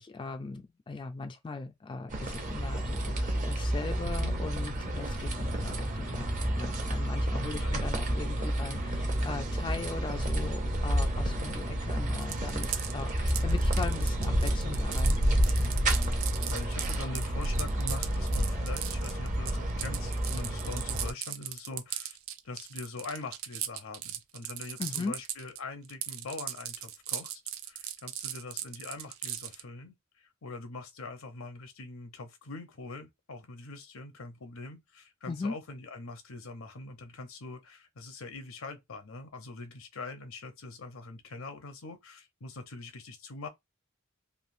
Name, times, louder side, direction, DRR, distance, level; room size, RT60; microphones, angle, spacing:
voice 1, 0.0-15.8 24.8-25.2 35.3-35.5, left 3 dB, 25° left, 0.3 m, -39 dB
sound 1, 2.1-21.1, right 1 dB, 40° right, 0.6 m, -30 dB
voice 2, 8.4-9.0 12.8-13.0 16.5-22.2 22.4-43.5, left 3 dB, 75° left, 0.7 m, -43 dB
sound 2, 12.2-25.6 25.8-29.6, right 11 dB, 75° right, 0.4 m, -38 dB
3.3 x 2.5 x 2.6 m
head